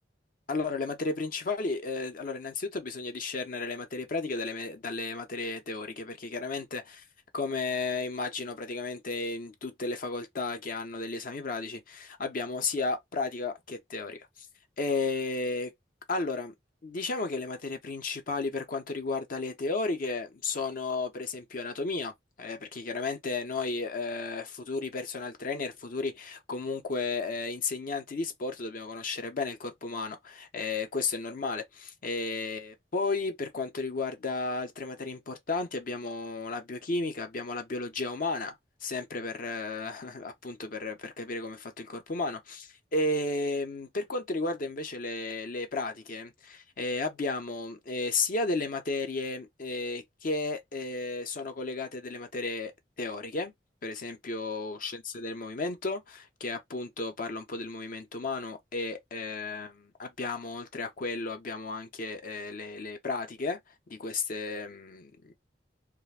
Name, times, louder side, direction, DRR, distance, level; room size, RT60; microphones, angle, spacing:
voice 1, 0.5-7.0 7.3-14.3 14.8-15.7 16.1-16.5 16.8-22.1 22.4-38.5 38.8-52.7 53.0-53.5 53.8-63.6 63.9-65.3, left 3 dB, 50° left, 0.6 m, -33 dB
2.4 x 2.0 x 3.2 m
head